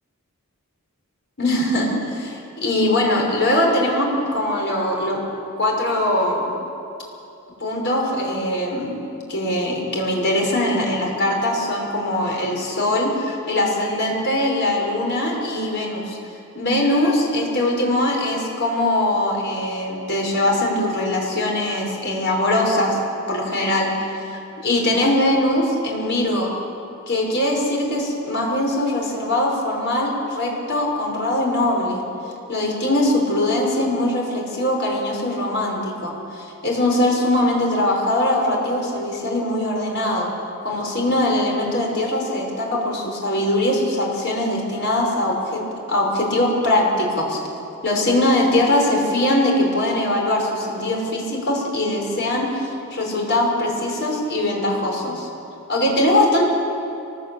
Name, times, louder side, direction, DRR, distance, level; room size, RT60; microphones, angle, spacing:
voice 1, 1.4-5.2 5.6-6.5 7.6-9.0 9.3-16.2 16.5-23.0 23.3-23.9 24.3-26.5 27.1-32.0 32.5-40.3 40.6-45.6 45.9-47.4 47.8-55.3 55.7-56.5, left 1 dB, 50° left, -1 dB, 5.9 m, -21 dB
24.5 x 20.5 x 8.7 m, 2.8 s
head